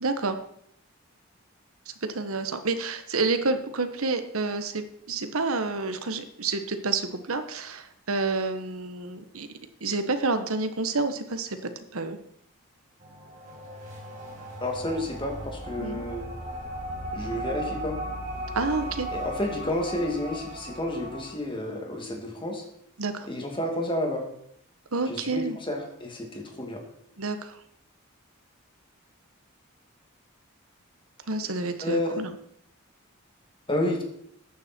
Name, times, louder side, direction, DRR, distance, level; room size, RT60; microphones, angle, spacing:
voice 1, 0.0-0.4 2.1-9.5 9.8-12.2 15.8-16.0 18.5-19.1 23.0-23.3 24.9-25.6 27.2-27.6 31.3-32.3, right 3 dB, 85° right, 9 dB, 1.3 m, -29 dB
sound 1, 13.0-21.3, right 1 dB, 35° right, 5.3 m, -37 dB
voice 2, 14.6-16.3 17.1-18.0 19.1-22.6 23.2-24.3 25.1-26.8 31.8-32.2 33.7-34.0, left 1 dB, 25° left, 2 dB, 2.4 m, -30 dB
14.5 x 9.6 x 4.5 m, 0.70 s
head